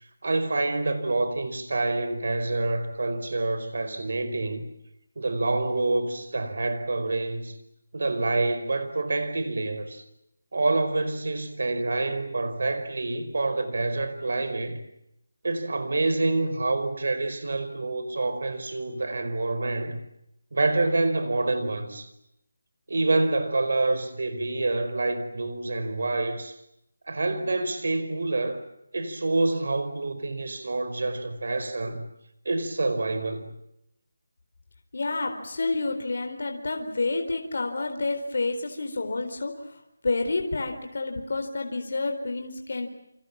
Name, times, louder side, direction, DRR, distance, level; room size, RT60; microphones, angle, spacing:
voice 1, 0.2-4.6 5.2-7.5 7.9-10.0 10.5-14.8 15.4-20.0 20.5-22.1 22.9-26.6 27.1-28.6 28.9-32.1 32.4-33.5, right 2 dB, 55° right, 4.9 m, -27 dB
voice 2, 34.9-42.9, left 3 dB, 50° left, 4.1 m, -29 dB
29.5 x 26.0 x 7.3 m
figure-of-eight pair, 175°, 0 cm